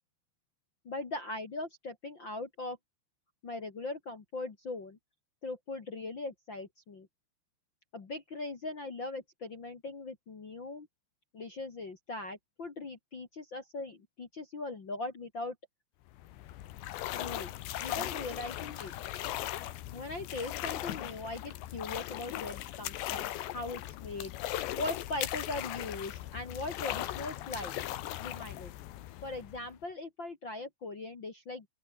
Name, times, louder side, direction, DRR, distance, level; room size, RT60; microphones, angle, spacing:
voice 1, 0.8-2.8 3.4-5.0 5.4-7.1 7.9-10.9 11.3-15.5 17.1-17.5 17.8-18.9 19.9-24.3 24.8-27.7 28.2-28.7 29.2-31.7, left 2 dB, 45° left, 1.5 m, -40 dB
sound 1, 16.1-29.8, left 14 dB, 70° left, 3.3 m, -38 dB
open air
omnidirectional pair, 5.7 m